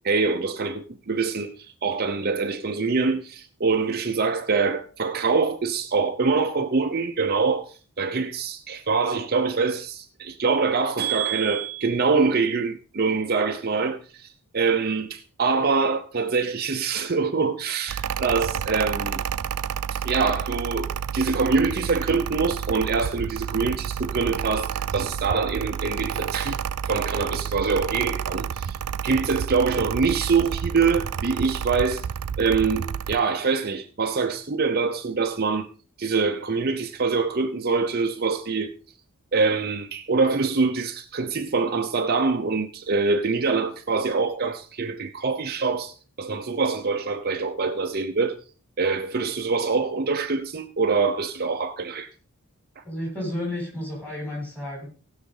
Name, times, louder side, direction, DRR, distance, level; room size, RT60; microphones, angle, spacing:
voice 1, 0.0-19.2 19.9-26.6 26.8-28.8 29.0-32.1 32.4-35.7 36.0-38.7 39.3-48.4 48.8-52.1 52.8-52.9, right 4 dB, 45° right, 0.7 m, -24 dB
Mechanical fan, 17.9-33.2, right 8 dB, 90° right, 0.5 m, -30 dB
voice 2, 52.8-54.9, left 1 dB, 5° left, 6.6 m, -31 dB
18.0 x 6.6 x 3.9 m
head